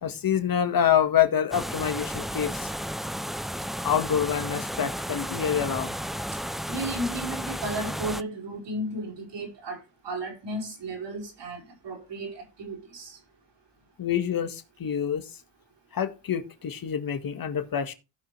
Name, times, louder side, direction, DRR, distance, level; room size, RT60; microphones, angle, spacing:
voice 1, 0.0-2.7 3.8-5.9 14.0-15.3 15.9-17.9, left 9 dB, 50° left, 1.7 m, -26 dB
sound 1, 1.5-8.2, equal, ahead, 0.4 m, -33 dB
voice 2, 6.7-13.2, right 1 dB, 65° right, 5.1 m, -34 dB
16.0 x 5.6 x 3.3 m
supercardioid pair, 70°, 45 cm